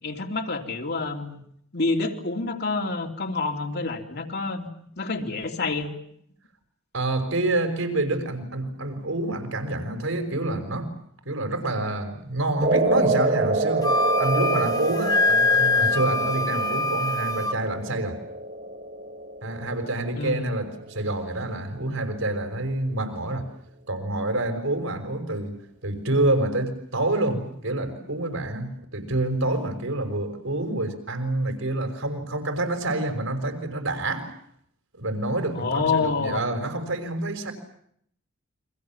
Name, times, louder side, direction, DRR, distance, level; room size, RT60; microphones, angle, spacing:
voice 1, 0.0-1.4 1.7-4.7 5.0-5.9 20.1-20.5 35.5-36.4, left 3 dB, 55° left, 3 dB, 3.2 m, -28 dB
voice 2, 6.9-10.9 11.2-18.2 19.4-23.5 23.9-25.6 25.8-34.3 34.9-37.5, right 2 dB, 75° right, 6 dB, 5.9 m, -27 dB
sound 1, 12.6-21.0, right 2 dB, 40° right, 2.2 m, -27 dB
Wind instrument woodwind instrument, 13.8-17.6, left 2 dB, 20° left, 1.5 m, -23 dB
30.0 x 24.0 x 7.4 m, 0.69 s
head